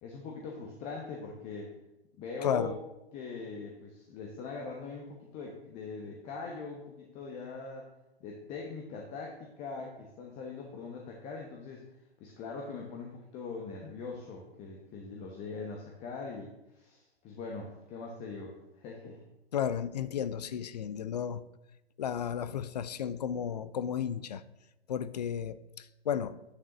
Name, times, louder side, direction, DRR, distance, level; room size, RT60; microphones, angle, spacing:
voice 1, 0.0-1.7 2.2-2.7 3.1-7.9 8.2-11.8 12.2-19.2, left 4 dB, 20° left, 1.1 m, -42 dB
voice 2, 2.4-2.8 19.5-21.4 22.0-24.4 24.9-26.4, left 8 dB, 40° left, 0.5 m, -33 dB
11.0 x 9.7 x 3.0 m
figure-of-eight pair, 120°, 32 cm